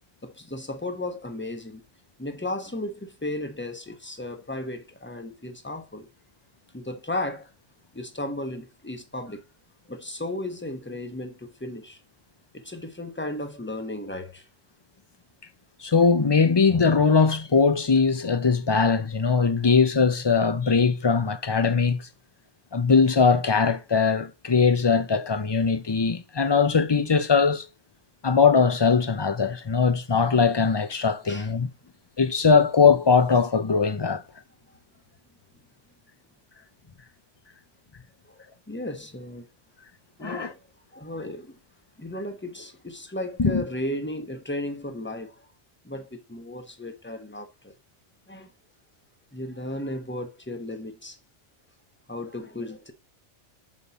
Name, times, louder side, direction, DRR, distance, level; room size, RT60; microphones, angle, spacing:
voice 1, 0.2-1.8 2.2-6.1 6.7-7.5 7.9-9.4 9.9-12.0 12.5-14.5 31.2-31.5 38.3-39.5 40.2-40.6 40.9-41.6 42.0-45.5 45.8-47.7 48.3-48.5 49.3-51.2 52.1-52.9, left 1 dB, 10° left, 1.0 m, -35 dB
voice 2, 15.8-22.1 22.7-27.7 28.2-31.7 32.2-34.2 40.2-40.5 43.4-43.6, left 5 dB, 30° left, 0.5 m, -21 dB
6.4 x 5.3 x 4.2 m
omnidirectional pair, 1.2 m